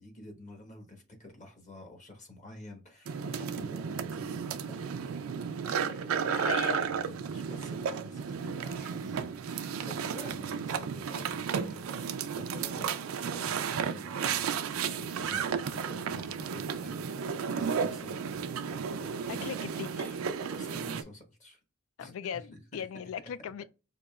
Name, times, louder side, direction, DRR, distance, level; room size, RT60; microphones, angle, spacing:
voice 1, 0.0-5.1 6.2-12.9 13.2-18.3 18.6-19.7 20.6-21.6 22.0-22.9, left 1 dB, 35° left, 1.1 m, -49 dB
sound 1, 3.1-21.0, right 6 dB, 85° right, 0.4 m, -33 dB
voice 2, 5.7-6.9 19.4-20.2 22.0-23.6, left 8 dB, 80° left, 0.3 m, -39 dB
5.1 x 2.8 x 2.3 m
head